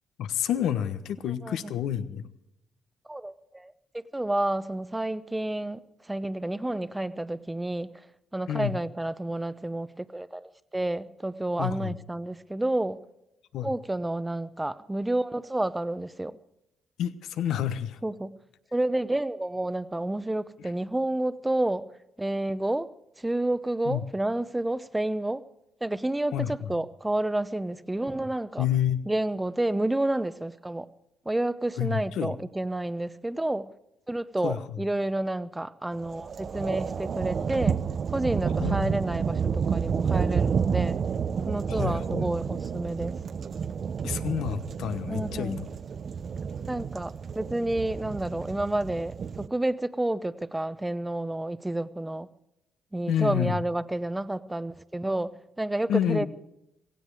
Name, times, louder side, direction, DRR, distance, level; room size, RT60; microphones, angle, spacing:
voice 1, 0.2-2.3 8.5-8.8 11.6-12.0 13.5-13.7 17.0-18.0 20.6-20.7 23.8-24.1 26.3-26.7 28.6-29.0 31.8-32.4 34.4-34.8 38.6-38.9 41.7-42.2 44.0-45.7 53.1-53.6 55.9-56.3, left 10 dB, 80° left, 12 dB, 1.1 m, -29 dB
voice 2, 1.4-1.7 3.1-5.8 6.1-7.9 8.3-13.0 13.6-16.4 18.0-18.4 18.7-21.9 22.2-22.9 23.2-25.4 25.8-28.6 29.1-30.9 31.3-33.7 34.1-37.8 38.1-41.0 41.5-43.1 45.1-45.6 46.7-52.3 52.9-55.3 55.6-56.3, right 1 dB, 10° right, 15 dB, 0.8 m, -30 dB
sound 1, 35.9-49.5, right 6 dB, 50° right, 0.7 m, -30 dB
17.0 x 16.5 x 4.8 m, 0.86 s
cardioid pair, 90°, 0 cm